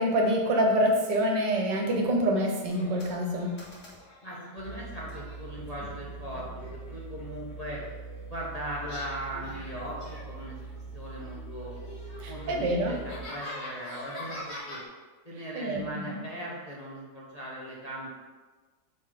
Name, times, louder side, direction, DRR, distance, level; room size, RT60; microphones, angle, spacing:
voice 1, 0.0-3.6 12.2-12.9 15.5-16.2, equal, 85° right, 1 dB, 1.6 m, -26 dB
sound 1, 2.7-4.4 5.1-8.4 8.8-10.9 11.1-14.8, left 1 dB, 70° left, 2.4 m, -44 dB
voice 2, 4.2-7.8 8.3-10.6 10.9-11.7 12.3-14.8 15.2-18.1, right 1 dB, 30° left, -6 dB, 0.8 m, -39 dB
sound 2, 4.6-13.2, right 4 dB, 60° right, 0.4 m, -43 dB
5.3 x 4.8 x 3.9 m, 1.3 s
omnidirectional pair, 1.9 m